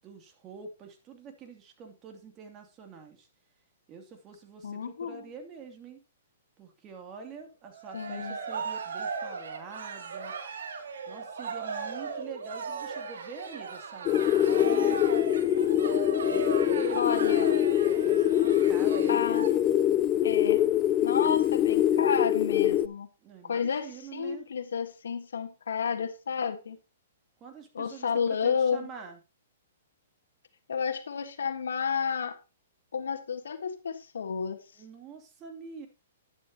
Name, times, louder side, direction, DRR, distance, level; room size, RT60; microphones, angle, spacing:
voice 1, 0.0-3.3 3.9-6.0 6.6-10.3 11.1-15.0 16.2-17.7 18.0-19.4 23.2-24.5 27.4-29.2 34.7-35.9, right 5 dB, 30° right, 4 dB, 2.7 m, -46 dB
voice 2, 4.6-5.3 7.9-8.4 16.9-17.5 19.1-19.5 20.2-20.6 21.0-23.1 23.4-26.8 27.7-28.9 30.7-32.3 32.9-34.6, left 6 dB, 80° left, 8 dB, 1.5 m, -31 dB
Cheering, 7.7-19.5, right 5 dB, 75° right, 2.5 m, -37 dB
sound 1, 14.1-22.9, left 11 dB, 30° left, 0.5 m, -24 dB
11.0 x 11.0 x 2.9 m, 0.29 s
hypercardioid pair, 130°, 0 cm